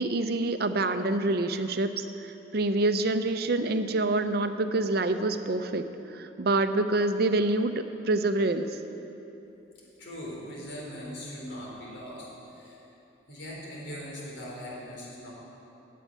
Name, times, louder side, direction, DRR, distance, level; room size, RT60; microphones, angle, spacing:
voice 1, 0.0-7.7 8.1-8.7, right 2 dB, 55° right, 9 dB, 0.6 m, -26 dB
voice 2, 10.0-12.8 13.3-15.3, equal, 80° left, -4 dB, 3.5 m, -40 dB
8.9 x 8.5 x 9.4 m, 3.0 s
head